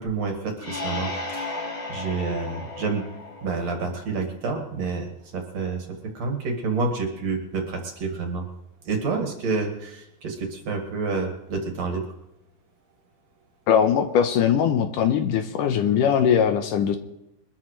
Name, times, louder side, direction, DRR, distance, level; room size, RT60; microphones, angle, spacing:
voice 1, 0.0-3.0 3.4-5.1 5.3-5.8 6.1-8.4 8.9-12.0, right 4 dB, 55° right, 2 dB, 3.0 m, -28 dB
sound 1, 0.6-4.2, left 2 dB, 40° left, 3.2 m, -34 dB
voice 2, 13.7-17.0, left 8 dB, 75° left, 7 dB, 2.3 m, -21 dB
22.5 x 13.0 x 3.2 m, 0.88 s
omnidirectional pair, 4.1 m